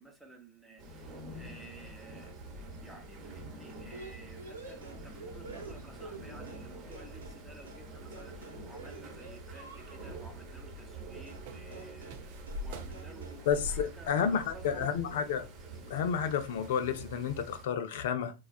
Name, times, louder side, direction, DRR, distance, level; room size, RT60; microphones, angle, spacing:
voice 1, 0.0-2.3 2.8-15.1, right 1 dB, ahead, 0.9 m, -53 dB
sound 1, 0.8-17.6, right 2 dB, 30° right, 1.0 m, -47 dB
sound 2, 3.9-6.7 6.9-7.4 7.7-7.9 8.1-10.2 11.3-11.5 11.7-12.2 12.5-12.7 12.9-13.4, right 3 dB, 75° right, 0.9 m, -49 dB
sound 3, 11.5-16.6, left 1 dB, 50° right, 0.5 m, -44 dB
voice 2, 13.5-15.4 15.9-18.3, left 7 dB, 55° left, 0.5 m, -31 dB
4.1 x 2.3 x 2.4 m
figure-of-eight pair, 90°, 0 cm